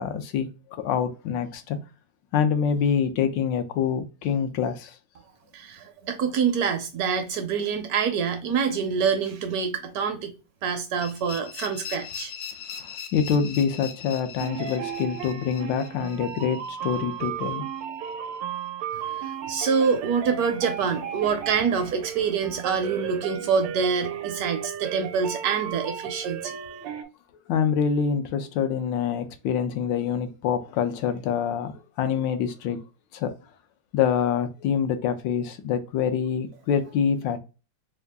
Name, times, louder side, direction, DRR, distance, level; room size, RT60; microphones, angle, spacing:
voice 1, 0.0-1.8 2.3-4.9 12.8-17.6 27.5-31.7 32.0-32.8 33.1-33.3 33.9-37.4, left 7 dB, 85° left, 1.3 m, -26 dB
voice 2, 5.5-10.3 10.6-12.3 18.9-26.6, right 6 dB, 70° right, 0.9 m, -26 dB
sound 1, 11.0-17.8, left 7 dB, 65° left, 1.0 m, -40 dB
sound 2, 14.4-27.0, right 9 dB, 85° right, 1.3 m, -34 dB
3.5 x 2.3 x 3.4 m
omnidirectional pair, 1.9 m